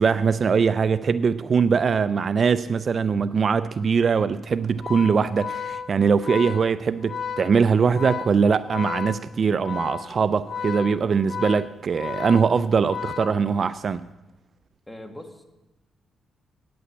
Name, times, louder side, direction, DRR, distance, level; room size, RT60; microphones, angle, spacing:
voice 1, 0.0-14.0, right 5 dB, 45° right, 0.3 m, -22 dB
Organ, 4.7-13.9, left 7 dB, 50° left, 0.6 m, -34 dB
voice 2, 14.9-15.4, left 1 dB, 10° left, 1.5 m, -40 dB
9.4 x 8.5 x 8.3 m
cardioid pair, 120°, 0 cm